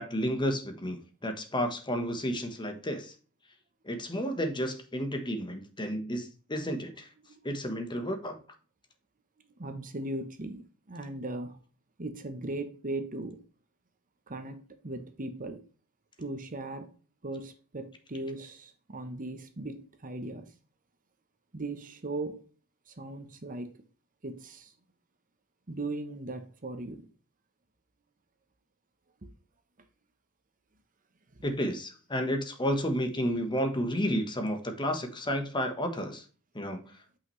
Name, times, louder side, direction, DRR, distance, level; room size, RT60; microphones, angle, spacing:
voice 1, 0.0-3.1 3.8-7.1 7.4-8.4 31.4-36.2 36.5-36.8, equal, 20° left, 1.3 m, -31 dB
voice 2, 9.6-11.6 12.0-13.4 14.3-15.6 16.2-16.9 17.2-20.5 21.5-22.4 22.9-23.8 24.2-24.7 25.7-27.1 29.2-29.3 31.3-31.5, right 2 dB, 40° right, 1.0 m, -38 dB
8.3 x 5.8 x 3.2 m
head